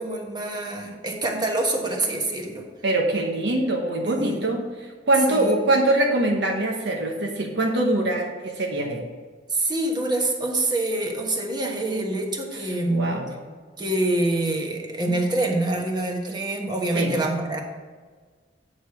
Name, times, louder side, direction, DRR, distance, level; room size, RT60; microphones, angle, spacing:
voice 1, 0.0-2.7 4.0-4.5 5.3-5.7 9.5-13.1 13.8-17.6, right 2 dB, 25° right, 1 dB, 1.3 m, -26 dB
voice 2, 2.8-9.0 12.9-13.3 16.9-17.2, right 1 dB, 65° right, 1 dB, 1.0 m, -23 dB
9.0 x 4.9 x 5.8 m, 1.5 s
head